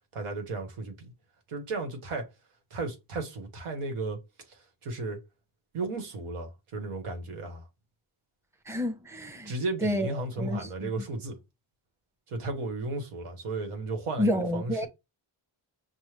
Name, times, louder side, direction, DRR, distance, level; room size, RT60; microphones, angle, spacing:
voice 1, 0.1-1.1 1.5-2.3 2.7-4.2 4.5-5.2 5.7-7.7 9.5-11.4 12.3-14.9, right 3 dB, 85° right, 1.1 m, -34 dB
voice 2, 8.7-9.5 9.8-10.1 10.4-10.9 14.2-14.9, left 1 dB, 5° right, 0.8 m, -29 dB
5.4 x 2.1 x 3.2 m
cardioid pair, 50°, 49 cm